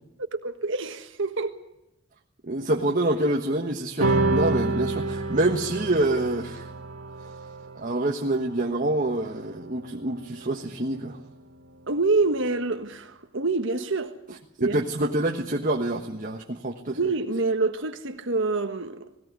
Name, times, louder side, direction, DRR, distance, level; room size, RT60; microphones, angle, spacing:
voice 1, 0.3-1.6 11.9-14.8 16.9-19.1, right 3 dB, 60° right, 1.5 m, -27 dB
voice 2, 2.4-6.7 7.8-11.2 14.6-17.0, right 1 dB, 40° right, 1.4 m, -26 dB
sound 1, 4.0-10.7, right 2 dB, 80° right, 2.2 m, -29 dB
19.5 x 17.5 x 9.6 m
head